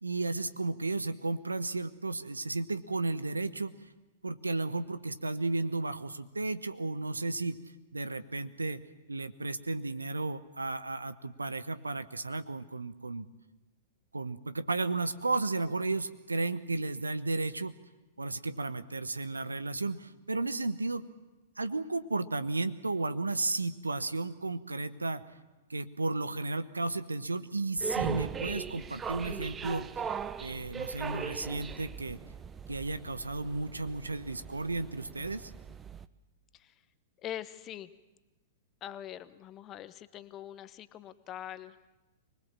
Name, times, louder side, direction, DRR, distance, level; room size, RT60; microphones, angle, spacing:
voice 1, 0.0-3.8 4.2-7.6 7.9-8.8 9.1-13.3 14.1-17.7 18.2-21.0 21.6-25.2 25.7-29.9 30.4-32.2 32.7-35.5, right 3 dB, 85° right, 13 dB, 1.1 m, -33 dB
sound 1, 27.8-36.1, right 6 dB, 20° right, 0.7 m, -39 dB
voice 2, 37.2-37.9 38.8-41.8, left 11 dB, 30° left, 14 dB, 1.1 m, -43 dB
25.0 x 20.0 x 7.5 m, 1.1 s
figure-of-eight pair, 105°, 0 cm